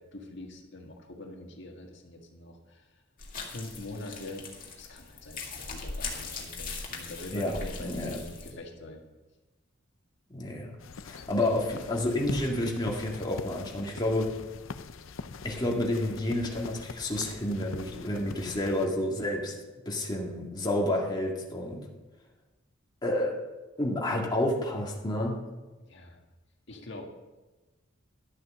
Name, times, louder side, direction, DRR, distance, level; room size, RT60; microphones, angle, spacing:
voice 1, 0.1-2.9 3.4-9.0 25.8-26.2 26.7-27.2, left 2 dB, 65° left, 1 dB, 1.8 m, -44 dB
sound 1, 3.2-8.5, left 4 dB, 45° left, 2.2 m, -40 dB
voice 2, 7.3-8.2 10.3-10.7 11.0-14.3 15.4-19.5 19.9-21.9 23.0-23.4 23.8-25.4, left 1 dB, 20° left, -2 dB, 2.0 m, -30 dB
sound 2, 10.8-18.9, left 4 dB, 80° left, 0.6 m, -43 dB
12.0 x 8.1 x 6.4 m, 1.1 s
head